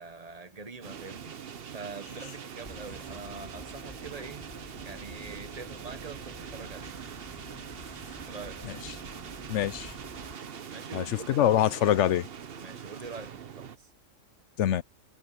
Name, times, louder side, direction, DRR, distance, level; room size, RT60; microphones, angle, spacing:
voice 1, 0.0-1.4 1.7-4.5 4.8-7.0 8.3-8.6 10.7-11.5 12.6-13.9, right 4 dB, 30° right, 1.2 m, -44 dB
sound 1, 0.8-13.8, right 7 dB, 50° right, 1.0 m, -43 dB
sound 2, 1.4-1.8 2.2-2.3 2.6-10.4, left 2 dB, 20° left, 1.0 m, -49 dB
voice 2, 9.5-9.9 10.9-12.3 14.6-14.8, left 11 dB, 65° left, 0.8 m, -24 dB
omnidirectional pair, 1.4 m